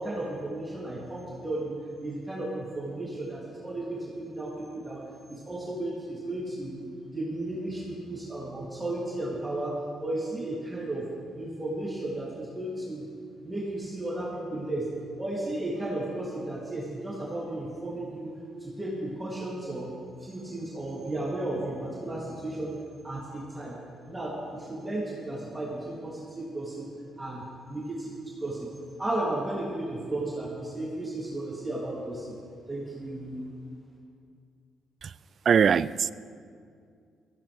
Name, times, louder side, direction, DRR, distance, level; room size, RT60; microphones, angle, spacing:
voice 1, 0.0-1.7 2.0-5.0 5.3-6.8 7.1-9.7 10.0-11.0 11.3-13.0 13.4-14.9 15.2-18.3 18.6-19.9 20.2-22.7 23.0-23.7 24.1-26.8 27.2-28.7 29.0-32.3 32.7-33.5, right 1 dB, 10° right, 3.3 m, -34 dB
voice 2, 35.5-36.1, right 7 dB, 50° right, 0.3 m, -21 dB
17.0 x 15.5 x 3.6 m
cardioid pair, 90°, 0 cm